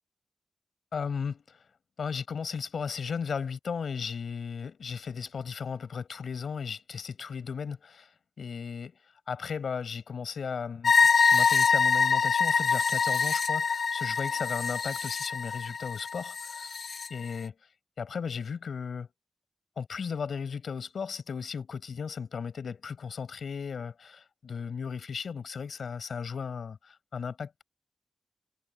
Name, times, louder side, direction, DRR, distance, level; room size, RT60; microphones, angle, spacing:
voice 1, 0.9-1.6 2.0-8.1 8.4-9.0 9.3-10.9 11.3-16.7 17.1-17.5 18.0-19.1 19.8-27.6, left 6 dB, 85° left, 5.2 m, -35 dB
sound 1, 10.8-17.1, left 5 dB, 65° left, 0.7 m, -25 dB
wide cardioid pair, 125°, 0 cm